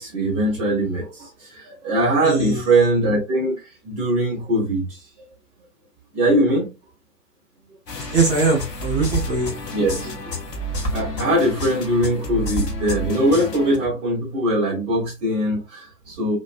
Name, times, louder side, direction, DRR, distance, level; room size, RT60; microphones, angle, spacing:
voice 1, 0.0-5.0 6.1-6.7 9.7-10.1 10.9-16.4, right 1 dB, 45° right, 1.7 m, -21 dB
voice 2, 2.2-2.7 8.1-10.1, right 4 dB, 20° right, 0.7 m, -22 dB
sound 1, 7.9-13.8, left 1 dB, 80° left, 0.9 m, -29 dB
4.0 x 2.2 x 2.4 m
figure-of-eight pair, 110°, 49 cm